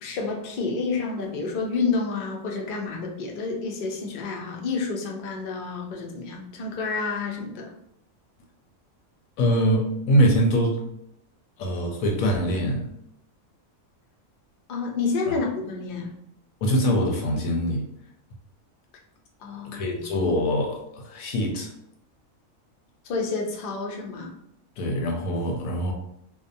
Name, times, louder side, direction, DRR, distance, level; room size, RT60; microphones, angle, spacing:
voice 1, 0.0-7.7 14.7-16.2 19.4-20.1 23.0-24.3, left 4 dB, 60° left, 0 dB, 0.5 m, -29 dB
voice 2, 9.4-10.8 11.6-12.8 16.6-17.8 19.6-21.7 24.8-25.9, equal, 85° left, 1 dB, 1.1 m, -23 dB
2.6 x 2.2 x 2.6 m, 0.76 s
omnidirectional pair, 1.4 m